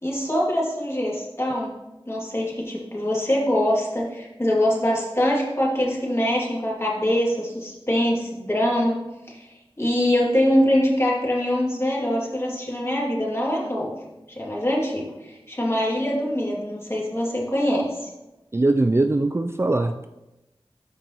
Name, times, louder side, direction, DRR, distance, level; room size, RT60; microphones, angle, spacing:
voice 1, 0.0-1.8 2.1-9.0 9.3-9.5 9.8-13.9 14.3-18.1, equal, 25° left, -4 dB, 2.5 m, -23 dB
voice 2, 18.5-20.0, right 2 dB, 25° right, 6 dB, 0.4 m, -21 dB
13.5 x 5.2 x 3.0 m, 0.97 s
wide cardioid pair, 55°, 10 cm